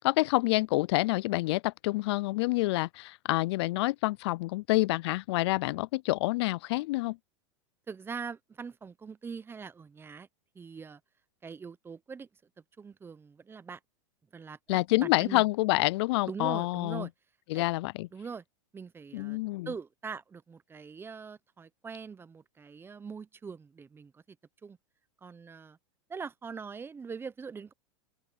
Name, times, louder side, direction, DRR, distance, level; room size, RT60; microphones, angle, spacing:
voice 1, 0.0-7.2 14.7-17.1 17.5-18.1 19.1-19.7, left 20 dB, 60° left, 0.4 m, -28 dB
voice 2, 7.9-10.3 10.5-11.0 11.4-12.3 12.8-13.8 14.3-15.4 16.3-17.1 17.5-17.7 18.1-18.4 18.7-19.4 19.7-24.4 24.6-24.8 25.2-25.8 26.1-27.7, right 5 dB, 15° right, 0.9 m, -42 dB
hypercardioid pair, 125°, 16 cm